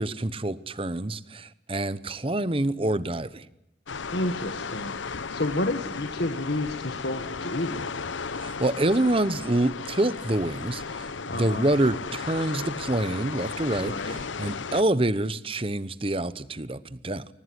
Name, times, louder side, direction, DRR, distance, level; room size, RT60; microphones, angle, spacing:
voice 1, 0.0-3.5 8.4-17.2, right 1 dB, 30° right, 15 dB, 0.9 m, -27 dB
sound 1, 3.9-14.8, left 5 dB, 90° left, 0.9 m, -35 dB
voice 2, 4.1-8.0 11.3-11.7 13.8-14.2, left 1 dB, 65° left, 7 dB, 1.6 m, -30 dB
23.5 x 19.5 x 9.5 m, 0.89 s
head